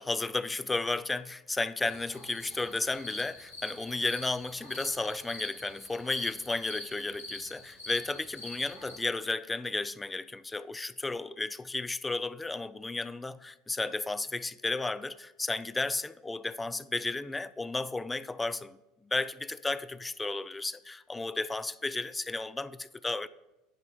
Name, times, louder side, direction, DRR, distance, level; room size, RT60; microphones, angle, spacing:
voice 1, 0.0-18.8 19.1-23.3, left 3 dB, 15° left, 0.3 m, -33 dB
sound 1, 1.8-9.0, left 2 dB, 90° left, 2.4 m, -46 dB
10.5 x 4.1 x 6.8 m
figure-of-eight pair, 70°, 0 cm